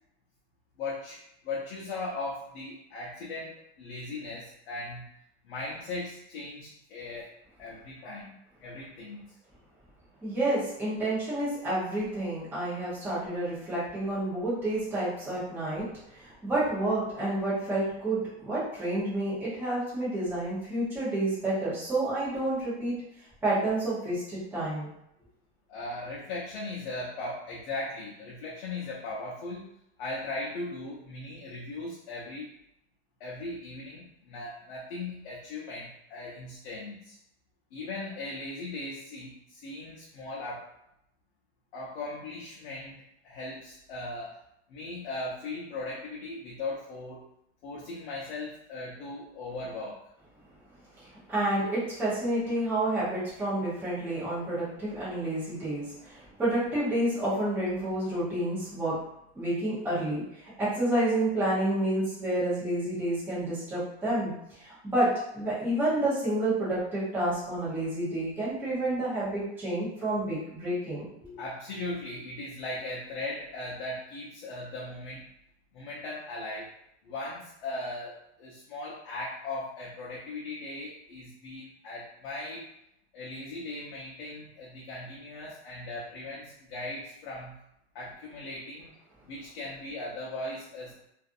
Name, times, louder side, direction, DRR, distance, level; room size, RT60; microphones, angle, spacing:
voice 1, 0.8-5.1 5.4-7.3 7.6-8.3 8.6-9.2 25.7-29.7 30.0-32.5 33.2-37.2 37.7-40.7 41.7-44.4 44.7-47.3 47.6-50.0 71.4-75.3 75.7-76.7 77.0-82.7 83.1-87.5 87.9-88.9 89.2-90.9, left 2 dB, 55° left, -4 dB, 0.7 m, -38 dB
voice 2, 10.2-22.9 23.4-24.9 51.0-59.0 59.3-64.3 64.6-71.3, right 1 dB, 5° right, -11 dB, 0.7 m, -29 dB
2.5 x 2.4 x 2.5 m, 0.78 s
supercardioid pair, 165°, 35 cm